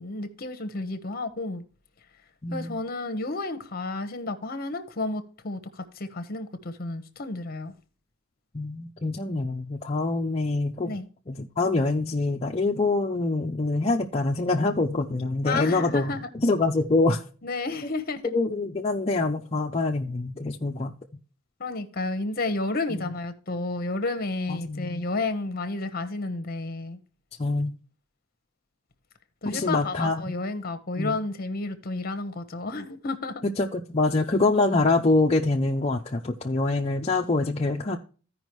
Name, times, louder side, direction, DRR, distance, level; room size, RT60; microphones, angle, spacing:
voice 1, 0.0-1.6 2.5-7.7 10.8-11.1 15.4-16.3 17.4-18.3 21.6-27.0 29.4-33.4, left 2 dB, 45° left, 1.1 m, -31 dB
voice 2, 2.4-2.8 8.5-11.0 11.3-17.2 17.8-17.9 18.2-20.9 22.9-23.1 24.5-25.0 27.4-27.7 29.4-30.4 31.0-31.2 33.6-38.0, left 2 dB, 30° left, 0.6 m, -25 dB
15.0 x 5.2 x 3.1 m
head